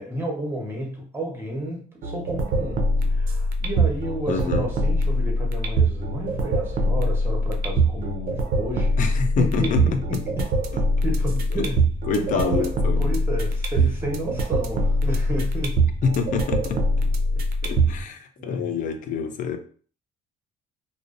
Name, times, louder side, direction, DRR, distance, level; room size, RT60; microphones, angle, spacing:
voice 1, 0.0-10.4 11.0-11.8 12.1-15.8 18.4-18.7, right 1 dB, 15° right, 0 dB, 0.8 m, -31 dB
sound 1, 2.0-18.0, right 1 dB, 60° right, 0.4 m, -23 dB
voice 2, 4.3-4.7 9.0-9.8 10.7-10.8 12.1-13.2 16.0-16.8 17.6-19.6, left 5 dB, 50° left, 7 dB, 0.4 m, -26 dB
2.5 x 2.0 x 2.5 m, 0.43 s
cardioid pair, 110°, 17 cm